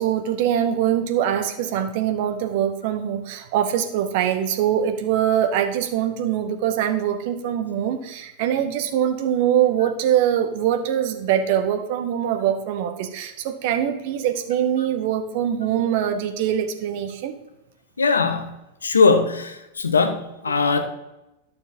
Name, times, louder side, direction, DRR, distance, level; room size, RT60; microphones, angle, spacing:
voice 1, 0.0-17.3 20.5-20.7, right 10 dB, 50° right, 7 dB, 0.9 m, -23 dB
voice 2, 18.0-18.5 18.8-20.8, left 4 dB, 75° left, 8 dB, 0.8 m, -20 dB
12.0 x 6.6 x 2.7 m, 0.93 s
figure-of-eight pair, 90°, 0 cm